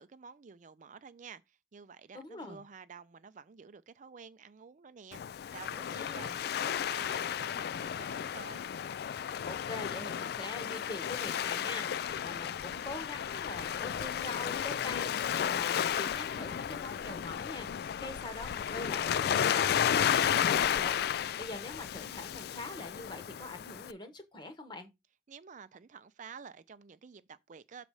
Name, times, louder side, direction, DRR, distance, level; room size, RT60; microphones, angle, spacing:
voice 1, 0.0-8.7 25.3-27.9, right 6 dB, 45° right, 0.4 m, -51 dB
voice 2, 2.1-2.6 5.9-6.4 9.5-24.9, left 2 dB, 25° left, 1.2 m, -44 dB
Waves surf, 5.1-23.9, left 9 dB, 60° left, 0.3 m, -33 dB
6.6 x 4.1 x 4.8 m
head